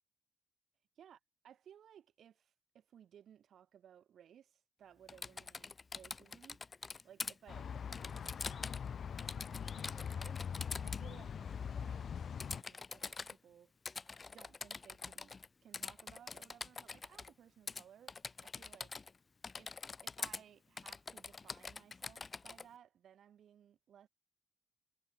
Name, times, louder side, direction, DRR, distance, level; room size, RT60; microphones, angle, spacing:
voice 1, 1.0-6.6 7.0-10.4 10.7-13.7 14.3-15.3 15.6-18.2 18.4-19.0 19.6-19.7 20.0-24.1, right 9 dB, 80° right, 7.3 m, -61 dB
Typing, 5.1-7.3 7.9-8.9 9.2-11.0 12.4-13.3 13.9-15.5 15.7-17.3 17.7-17.8 18.1-19.2 19.4-20.4 20.8-22.7, left 4 dB, 45° left, 1.2 m, -45 dB
sound 1, 7.5-12.6, left 7 dB, 70° left, 1.3 m, -42 dB
supercardioid pair, 45°, 0 cm